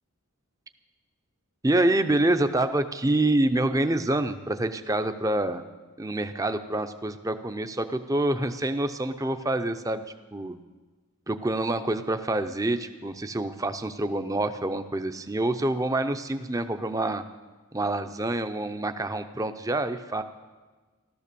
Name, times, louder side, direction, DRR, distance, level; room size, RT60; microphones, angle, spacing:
voice 1, 1.6-5.6 6.0-10.0 10.3-10.6 11.3-17.2 17.7-20.2, right 1 dB, 15° right, 9 dB, 0.6 m, -26 dB
15.0 x 13.0 x 6.9 m, 1.3 s
head